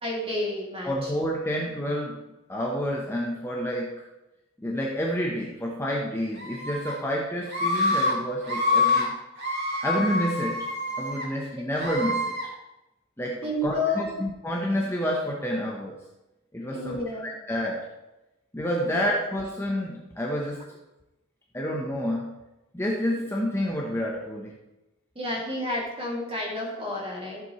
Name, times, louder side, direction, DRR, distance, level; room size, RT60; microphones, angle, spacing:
voice 1, 0.0-1.1 11.6-11.7 13.4-14.2 16.7-17.3 18.8-19.0 25.2-27.4, left 1 dB, 25° right, -2 dB, 2.5 m, -30 dB
voice 2, 0.8-2.2 2.5-4.0 4.6-9.2 9.8-10.7 11.0-12.3 13.2-16.0 16.5-17.9 18.5-20.6 21.5-22.4 22.7-24.5, equal, 10° left, -2 dB, 1.0 m, -29 dB
Screaming, 6.4-6.9 7.5-8.1 8.4-9.0 9.4-11.3 11.7-12.4, left 2 dB, 50° right, 2.6 m, -26 dB
14.0 x 7.6 x 3.2 m, 0.98 s
head